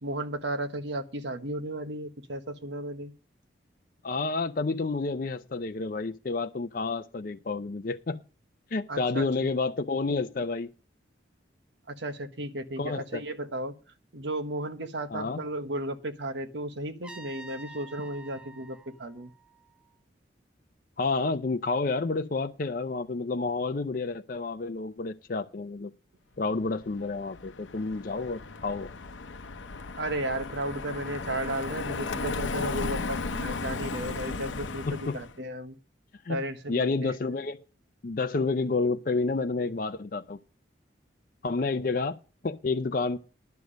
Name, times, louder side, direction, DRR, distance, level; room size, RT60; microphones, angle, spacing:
voice 1, 0.0-3.1 8.9-9.5 11.9-13.7 14.1-19.3 30.0-35.8 36.3-37.1, right 1 dB, 70° right, 1.2 m, -34 dB
voice 2, 4.0-8.2 8.7-10.7 12.8-13.2 15.1-15.4 21.0-25.9 26.4-28.9 34.9-35.2 36.2-36.4 36.7-37.7 38.0-40.4 41.4-42.2 42.4-43.2, left 3 dB, 45° left, 0.5 m, -30 dB
Trumpet, 17.0-20.0, right 3 dB, 5° right, 0.5 m, -48 dB
Car passing by, 26.8-35.4, left 3 dB, 85° left, 0.7 m, -35 dB
10.5 x 6.9 x 6.3 m
head